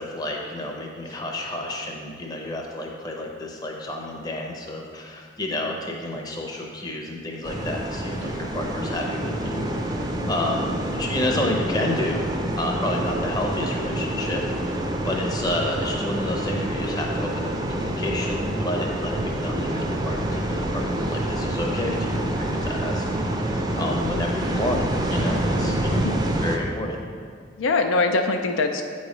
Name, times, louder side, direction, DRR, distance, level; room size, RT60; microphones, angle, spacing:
voice 1, 0.0-12.3 12.6-24.8 25.1-26.1 26.4-27.0, left 1 dB, 20° left, 0 dB, 0.7 m, -30 dB
sound 1, 7.4-26.6, right 1 dB, 20° right, 0.5 m, -27 dB
voice 2, 10.2-10.5 25.9-26.2 27.6-28.8, left 3 dB, 75° left, 5 dB, 0.4 m, -24 dB
8.7 x 3.2 x 5.0 m, 2.1 s
head